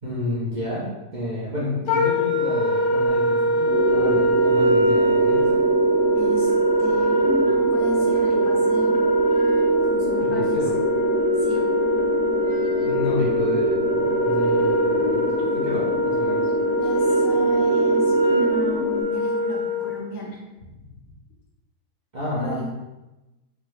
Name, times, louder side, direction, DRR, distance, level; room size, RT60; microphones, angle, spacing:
voice 1, 0.0-5.6 10.2-10.8 12.8-15.2 15.5-16.5 22.1-22.8, left 1 dB, 35° right, -8 dB, 0.8 m, -30 dB
Wind instrument woodwind instrument, 1.9-20.0, right 1 dB, 75° left, 1.3 m, -22 dB
sound 1, 3.6-19.0, right 1 dB, 30° left, 0.5 m, -25 dB
voice 2, 6.1-6.5 6.8-9.0 9.9-10.6 11.4-11.6 16.8-20.4 22.3-22.7, left 1 dB, 60° left, -2 dB, 1.0 m, -33 dB
5.3 x 2.2 x 3.2 m, 1.0 s
omnidirectional pair, 1.7 m